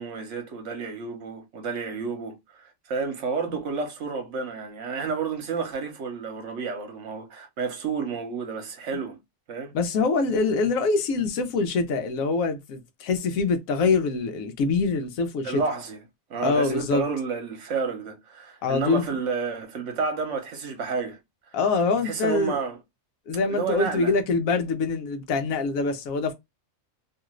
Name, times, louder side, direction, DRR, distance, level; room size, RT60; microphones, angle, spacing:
voice 1, 0.0-9.2 9.5-9.7 15.4-16.0 16.3-21.2 22.0-22.8 23.5-24.1, right 5 dB, 65° right, 1.1 m, -30 dB
voice 2, 9.7-15.6 16.4-17.0 18.6-19.0 21.5-22.6 23.3-26.3, left 4 dB, 90° left, 1.1 m, -24 dB
2.8 x 2.4 x 3.0 m
omnidirectional pair, 1.4 m